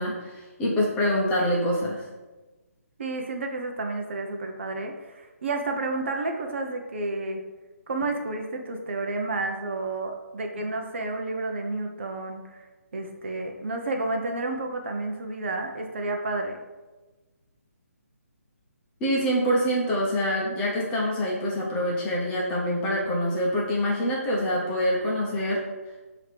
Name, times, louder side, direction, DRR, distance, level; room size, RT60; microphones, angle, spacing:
voice 1, 0.0-2.1 19.0-25.6, equal, 10° left, -4 dB, 0.9 m, -25 dB
voice 2, 3.0-7.4 7.9-12.7 12.9-16.6, right 2 dB, 50° right, 3 dB, 0.8 m, -31 dB
6.4 x 2.9 x 5.1 m, 1.2 s
hypercardioid pair, 165°, 8 cm